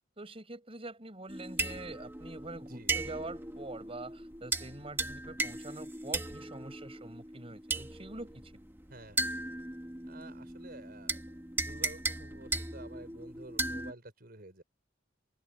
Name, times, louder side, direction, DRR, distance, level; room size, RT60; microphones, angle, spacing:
voice 1, 0.2-8.5, right 2 dB, 30° right, 4.8 m, -45 dB
sound 1, 1.3-13.9, right 2 dB, 10° right, 1.1 m, -37 dB
voice 2, 8.9-9.2 10.1-11.4 11.6-14.6, right 2 dB, 50° right, 5.1 m, -50 dB
head